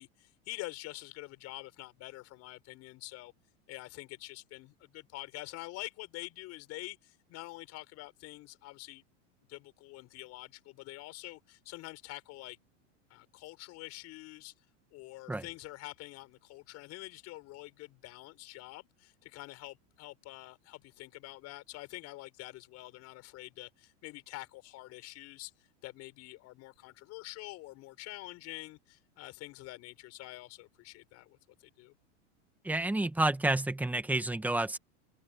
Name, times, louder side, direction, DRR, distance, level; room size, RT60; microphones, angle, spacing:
voice 1, 0.0-3.3 3.7-9.0 9.5-12.6 13.1-14.5 14.9-31.9, left 19 dB, 45° left, 6.9 m, -46 dB
voice 2, 32.6-34.8, right 2 dB, 5° right, 1.7 m, -29 dB
supercardioid pair, 140°, 36 cm